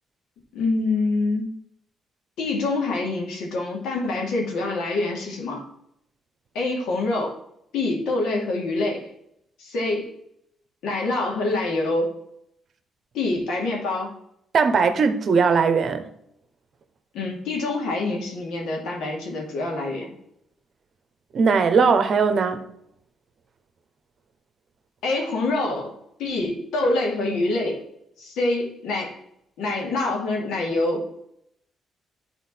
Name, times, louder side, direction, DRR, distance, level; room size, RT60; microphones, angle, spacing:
voice 1, 0.5-1.5 2.4-5.6 6.5-7.4 7.7-9.0 9.6-10.1 10.8-12.2 13.1-14.1 17.1-20.1 25.0-25.9 26.2-27.8 28.2-29.2 29.6-31.1, left 2 dB, 85° left, 2.5 m, -25 dB
voice 2, 14.5-16.0 21.3-22.6, right 5 dB, 55° right, 1.0 m, -19 dB
10.5 x 4.3 x 4.4 m
cardioid pair, 90°, 0 cm